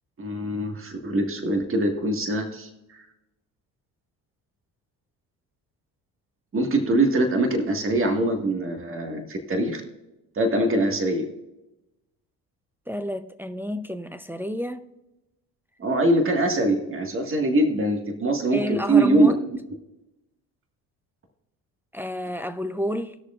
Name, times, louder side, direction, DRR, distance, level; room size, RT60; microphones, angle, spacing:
voice 1, 0.2-3.1 6.5-9.8 10.4-11.3 15.8-19.4, right 2 dB, 35° right, 1.8 m, -23 dB
voice 2, 12.9-14.9 18.5-19.4 21.9-23.2, left 1 dB, 5° right, 0.6 m, -30 dB
19.5 x 6.6 x 2.5 m
supercardioid pair, 80°, 39 cm